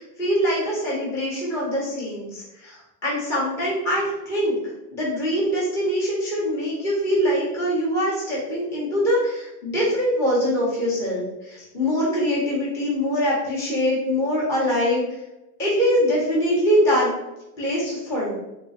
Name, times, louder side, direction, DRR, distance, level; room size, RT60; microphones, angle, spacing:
voice 1, 0.0-4.6 4.9-15.2 15.6-17.1 17.6-18.3, equal, 5° left, -6 dB, 0.4 m, -23 dB
3.1 x 3.0 x 2.7 m, 0.96 s
supercardioid pair, 155°, 43 cm